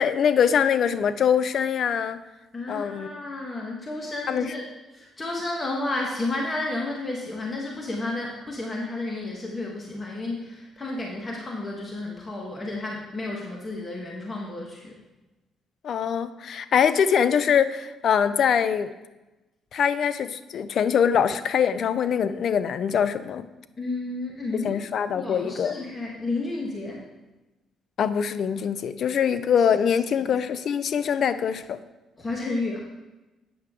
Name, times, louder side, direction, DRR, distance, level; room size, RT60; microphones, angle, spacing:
voice 1, 0.0-2.2 2.7-3.1 4.3-4.5 15.8-18.9 19.7-23.5 24.6-25.7 28.0-31.8, left 7 dB, 60° left, 13 dB, 0.4 m, -23 dB
voice 2, 2.5-4.6 4.9-14.9 23.8-24.8 25.1-27.0 30.2-30.3 32.2-32.8, left 2 dB, 30° left, -1 dB, 1.2 m, -31 dB
8.7 x 6.6 x 3.6 m, 1.1 s
cardioid pair, 80°, 0 cm